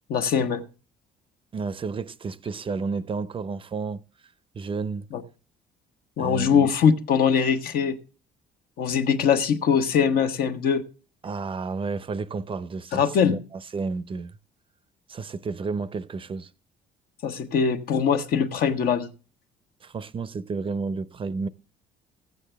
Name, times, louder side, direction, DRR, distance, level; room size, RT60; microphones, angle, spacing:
voice 1, 0.1-0.6 5.1-5.2 6.2-8.0 8.8-10.8 12.9-13.4 17.2-19.1, left 7 dB, 60° left, 1.2 m, -22 dB
voice 2, 1.5-4.0 4.5-5.1 6.2-6.7 11.2-14.3 15.1-16.5 19.8-21.5, right 4 dB, 30° right, 0.6 m, -31 dB
14.5 x 8.4 x 3.4 m
cardioid pair, 110°, 17 cm